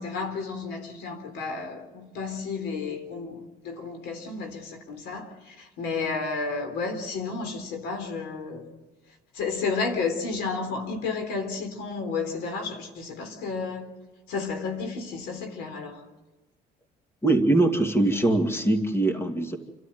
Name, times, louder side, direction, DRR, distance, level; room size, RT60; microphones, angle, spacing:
voice 1, 0.0-8.7 9.3-13.9 14.3-16.0, left 4 dB, 85° left, 4.0 m, -32 dB
voice 2, 17.2-19.6, right 2 dB, 15° left, 2.3 m, -22 dB
28.5 x 13.0 x 9.3 m
cardioid pair, 110°, 17 cm